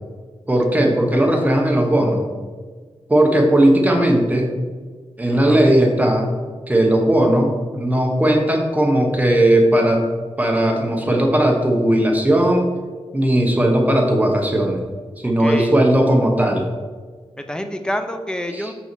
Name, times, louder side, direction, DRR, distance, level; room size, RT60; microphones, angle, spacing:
voice 1, 0.5-2.3 3.1-4.5 5.2-6.3 6.7-10.0 10.4-12.7 13.1-14.8 15.2-16.7 18.5-18.7, right 1 dB, 15° right, 2 dB, 1.1 m, -17 dB
voice 2, 5.3-5.6 15.2-15.8 17.4-18.7, equal, 5° left, 7 dB, 0.6 m, -27 dB
5.7 x 5.5 x 4.6 m, 1.6 s
wide cardioid pair, 105°, 11 cm